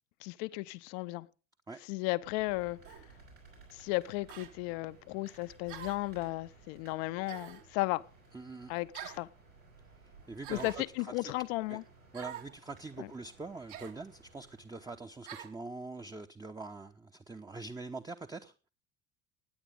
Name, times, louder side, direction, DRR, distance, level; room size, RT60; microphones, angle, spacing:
voice 1, 0.2-1.3 1.8-2.8 3.7-8.1 8.7-9.3 10.5-11.8 13.0-13.1, left 20 dB, 50° left, 0.8 m, -35 dB
sound 1, 2.1-15.1, right 3 dB, 85° right, 5.5 m, -58 dB
sound 2, 2.9-3.1 4.3-4.5 5.7-6.1 7.3-7.7 8.9-9.3 10.4-10.9 12.1-12.5 13.7-14.0 15.3-15.6, right 10 dB, 60° right, 2.5 m, -45 dB
voice 2, 8.3-8.7 10.3-11.3 11.7-11.8 12.1-18.5, right 3 dB, 10° right, 0.9 m, -44 dB
17.0 x 9.9 x 5.1 m
figure-of-eight pair, 65°, 40 cm